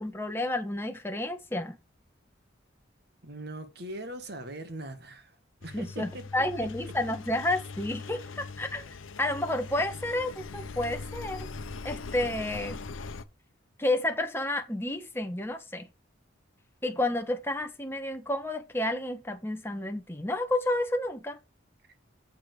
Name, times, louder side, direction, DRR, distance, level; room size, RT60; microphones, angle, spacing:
voice 1, 0.0-1.8 5.7-8.8 9.2-11.5 11.8-12.8 13.8-15.9 16.8-21.4, left 1 dB, 10° left, 1.3 m, -30 dB
voice 2, 3.2-5.4 5.6-6.3 6.8-6.9 9.7-9.8, right 1 dB, 55° right, 1.8 m, -41 dB
Engine, 5.6-13.2, left 4 dB, 90° left, 0.8 m, -41 dB
7.4 x 6.6 x 4.9 m
head